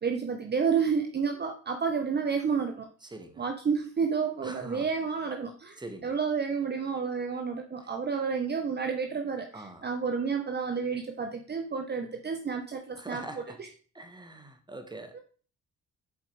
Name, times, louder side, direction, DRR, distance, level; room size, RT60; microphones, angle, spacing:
voice 1, 0.0-2.9 3.4-13.2 15.1-15.2, right 6 dB, 35° right, 0.9 m, -30 dB
voice 2, 3.0-3.4 4.4-4.9 5.8-6.2 9.5-9.9 13.0-13.6 13.9-15.2, right 2 dB, 15° right, 1.4 m, -43 dB
7.4 x 4.7 x 4.7 m
cardioid pair, 90°, 30 cm